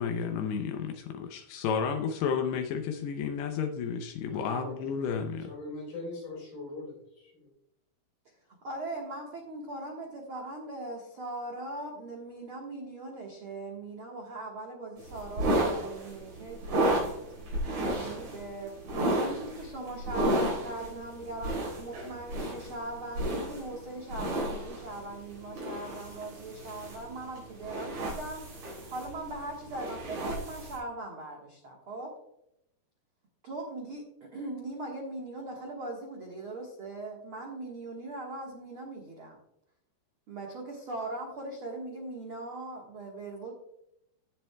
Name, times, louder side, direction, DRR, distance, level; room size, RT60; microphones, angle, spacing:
voice 1, 0.0-5.5, left 6 dB, 80° left, 5 dB, 2.7 m, -32 dB
voice 2, 4.2-4.7 5.4-7.5, left 2 dB, 65° left, -1 dB, 6.0 m, -42 dB
voice 3, 8.6-17.2 17.9-32.1 33.4-39.4 40.3-43.5, right 2 dB, 65° right, -1 dB, 1.3 m, -40 dB
sound 1, 15.0-30.8, right 1 dB, 85° right, 6.4 m, -33 dB
16.5 x 7.6 x 2.3 m, 0.78 s
omnidirectional pair, 4.7 m